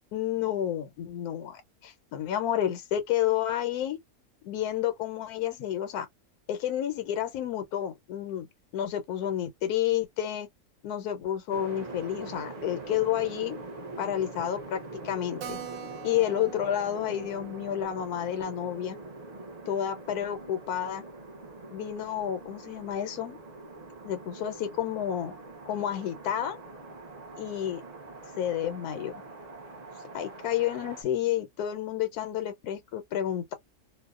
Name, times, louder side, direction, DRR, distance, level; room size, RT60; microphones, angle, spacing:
voice 1, 0.1-4.0 4.4-6.1 6.5-8.5 8.7-10.5 10.8-13.6 14.0-15.6 16.0-19.0 19.7-21.0 21.7-23.4 24.0-25.4 25.7-26.6 27.4-27.8 28.4-29.2 30.1-33.5, left 11 dB, 85° left, 1.1 m, -30 dB
sound 1, 11.5-31.0, right 2 dB, 45° right, 0.5 m, -43 dB
Keyboard (musical), 15.4-20.5 20.7-20.8 21.1-21.2 21.5-21.6 22.1-22.5, right 9 dB, 65° right, 0.9 m, -46 dB
2.6 x 2.0 x 2.4 m
omnidirectional pair, 1.6 m